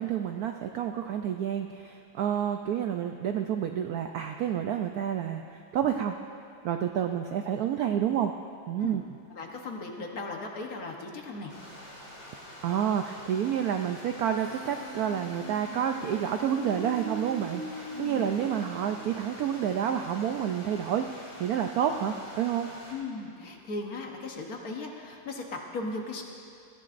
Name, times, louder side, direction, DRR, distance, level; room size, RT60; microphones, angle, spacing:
voice 1, 0.0-6.2 6.6-8.3 8.7-9.0 12.6-22.7, right 9 dB, 75° right, 5 dB, 0.8 m, -29 dB
voice 2, 9.3-11.5 17.9-18.3 22.9-26.2, left 3 dB, 55° left, 1 dB, 1.4 m, -37 dB
Stream, 11.5-22.9, left 1 dB, 35° left, 3.5 m, -46 dB
Human voice, 14.4-19.3, right 2 dB, 75° left, 4.6 m, -41 dB
19.5 x 14.5 x 2.5 m, 2.4 s
omnidirectional pair, 2.1 m